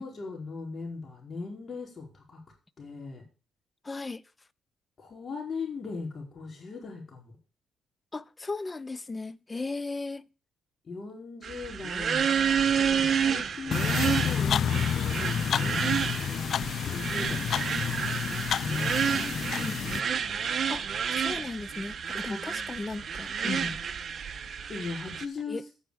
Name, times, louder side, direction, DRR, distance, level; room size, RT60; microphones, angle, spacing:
voice 1, 0.0-2.4 2.8-3.2 5.0-7.3 10.9-12.2 12.5-16.5 16.9-18.2 18.6-20.2 22.2-22.4 23.4-23.8 24.7-25.6, left 4 dB, 45° left, 4.7 m, -39 dB
voice 2, 3.8-4.2 8.1-10.3 19.2-19.8 20.7-23.6 25.5-25.6, left 3 dB, 25° left, 0.7 m, -37 dB
sound 1, 11.4-25.3, right 7 dB, 50° right, 1.2 m, -30 dB
sound 2, 13.7-20.0, left 8 dB, 60° left, 0.5 m, -29 dB
12.0 x 9.4 x 4.9 m
cardioid pair, 90°, 0 cm